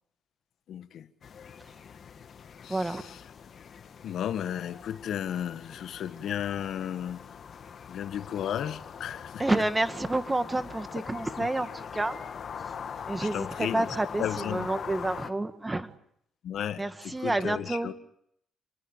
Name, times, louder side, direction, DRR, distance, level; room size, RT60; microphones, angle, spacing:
voice 1, 0.7-1.1 2.6-3.2 4.0-7.2 7.9-9.4 13.2-14.7 16.4-17.9, left 10 dB, 70° left, 1.5 m, -34 dB
sound 1, 1.2-15.3, left 7 dB, 55° left, 2.0 m, -42 dB
voice 2, 2.7-3.0 9.4-12.2 13.1-15.9 16.8-17.9, right 2 dB, 15° right, 1.8 m, -29 dB
28.0 x 19.5 x 8.0 m
cardioid pair, 90°, 0 cm